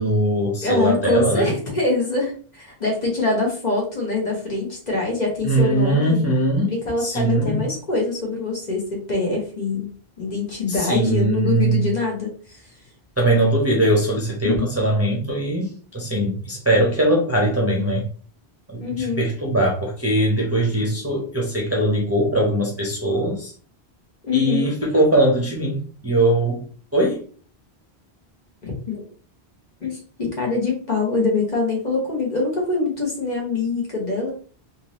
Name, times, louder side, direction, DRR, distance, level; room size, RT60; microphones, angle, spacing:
voice 1, 0.0-1.5 5.4-6.7 7.0-7.6 10.7-11.8 13.2-18.0 18.7-23.5 24.3-26.6 26.9-27.2, right 1 dB, 15° right, -3 dB, 0.7 m, -21 dB
voice 2, 0.6-6.2 6.6-12.6 14.4-14.7 18.8-19.2 24.2-24.7 28.6-29.0 29.8-34.3, left 3 dB, 40° left, -2 dB, 1.3 m, -24 dB
3.5 x 2.8 x 3.0 m, 0.42 s
omnidirectional pair, 1.1 m